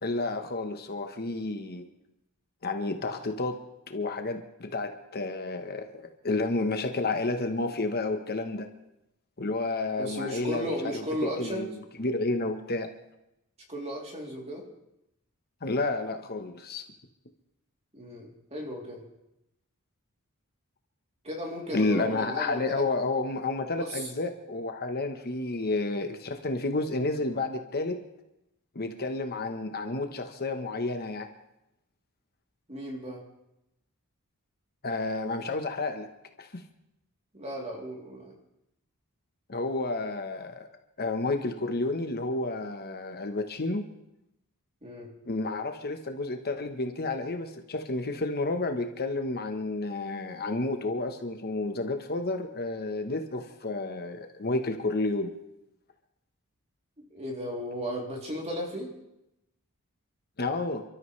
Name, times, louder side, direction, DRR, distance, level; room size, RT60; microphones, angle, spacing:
voice 1, 0.0-1.8 2.6-3.6 3.9-8.7 9.4-11.7 12.0-12.9 15.6-16.8 21.7-28.0 28.7-31.3 34.8-36.1 36.4-36.6 39.5-40.7 41.0-43.8 45.2-55.3 60.4-60.8, left 2 dB, 45° left, 5 dB, 1.2 m, -31 dB
voice 2, 10.0-11.7 13.7-14.7 17.9-19.0 21.2-22.8 23.8-24.1 32.7-33.2 37.3-38.3 44.8-45.1 57.1-58.9, equal, 30° right, -1 dB, 3.3 m, -35 dB
29.5 x 13.0 x 3.3 m, 0.86 s
head